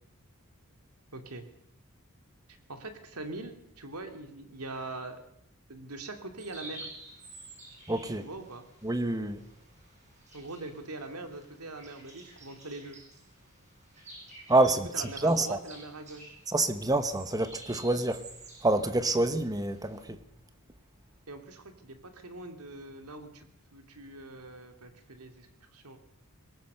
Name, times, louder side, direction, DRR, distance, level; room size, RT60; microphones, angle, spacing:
voice 1, 1.1-1.4 2.5-5.2 5.7-6.9 8.2-8.6 10.3-13.0 14.9-16.3 21.3-26.0, right 2 dB, 85° right, 2.7 m, -43 dB
sound 1, 6.4-20.0, right 2 dB, 35° right, 6.6 m, -51 dB
voice 2, 7.9-8.3 8.8-9.4 14.5-14.9 15.2-15.6 16.5-18.2 18.6-20.2, right 2 dB, 15° right, 1.2 m, -27 dB
21.0 x 18.5 x 6.7 m
head